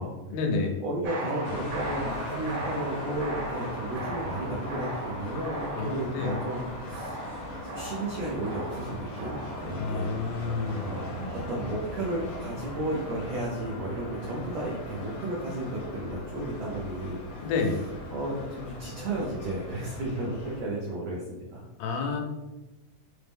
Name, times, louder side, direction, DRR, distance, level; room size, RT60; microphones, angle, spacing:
voice 1, 0.3-0.8 5.7-6.4 9.7-10.9 17.4-17.8 21.8-22.2, left 4 dB, 90° left, 2 dB, 2.4 m, -29 dB
voice 2, 0.8-7.2 7.7-11.1 11.5-17.5 18.1-21.6, right 1 dB, 90° right, -4 dB, 1.4 m, -33 dB
sound 1, 1.0-9.7, right 1 dB, 70° right, 1.5 m, -38 dB
sound 2, 1.4-20.6, left 1 dB, 70° left, 1.4 m, -39 dB
5.6 x 2.0 x 3.4 m, 1.1 s
omnidirectional pair, 3.8 m